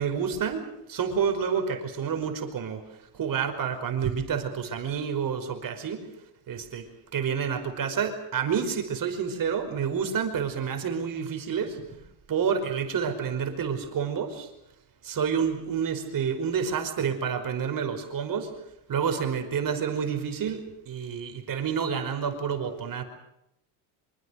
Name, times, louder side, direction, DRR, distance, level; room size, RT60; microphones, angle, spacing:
voice 1, 0.0-2.8 3.1-6.1 6.5-6.9 7.1-12.0 12.3-14.5 15.0-18.5 18.9-23.0, right 7 dB, 40° right, 7 dB, 5.3 m, -29 dB
26.5 x 24.0 x 6.6 m, 0.82 s
cardioid pair, 115°, 50 cm